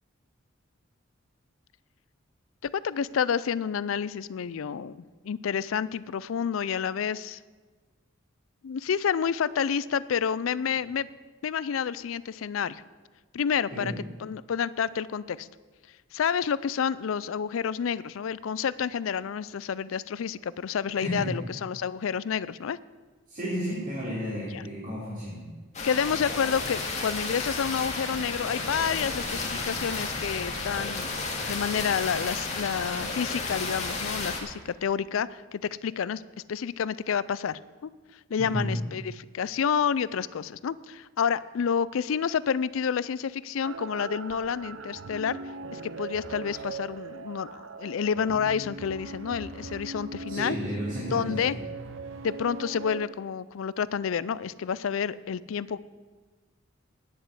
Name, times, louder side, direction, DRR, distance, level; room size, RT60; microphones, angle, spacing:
voice 1, 2.6-7.4 8.6-11.1 11.4-12.8 13.3-13.9 14.2-15.5 16.1-22.8 24.5-24.6 25.8-31.2 31.5-36.2 36.5-37.9 38.3-45.4 45.7-50.6 51.1-51.5 52.2-55.8, left 7 dB, 75° left, 19 dB, 0.4 m, -29 dB
voice 2, 20.9-21.3 23.3-25.5 38.4-38.7 50.3-51.5, equal, 40° right, -9 dB, 3.7 m, -33 dB
sound 1, 25.7-34.4, left 3 dB, 35° left, 1.9 m, -32 dB
sound 2, 28.6-31.4, equal, 15° right, 1.2 m, -46 dB
sound 3, 43.6-53.1, right 3 dB, 70° right, 0.7 m, -40 dB
9.8 x 7.8 x 8.1 m, 1.4 s
head